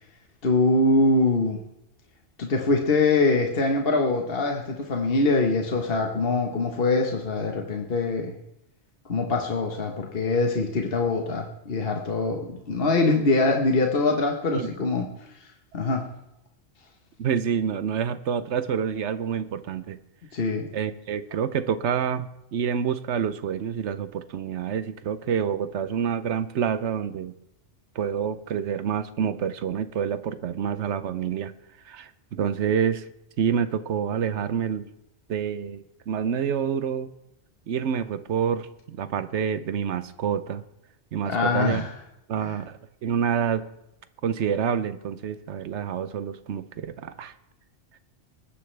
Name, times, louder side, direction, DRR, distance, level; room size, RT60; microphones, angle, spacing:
voice 1, 0.4-1.6 2.4-8.4 9.0-15.1 15.7-16.0 20.3-20.7 41.2-41.9, left 3 dB, 55° left, 2 dB, 1.4 m, -23 dB
voice 2, 17.2-20.0 20.7-27.3 28.0-31.5 31.9-33.0 33.4-34.9 35.3-37.1 37.7-40.6 41.1-41.8 42.3-43.6 44.2-47.3, right 8 dB, 80° right, 13 dB, 1.0 m, -27 dB
21.0 x 10.0 x 3.3 m, 0.86 s
omnidirectional pair, 1.2 m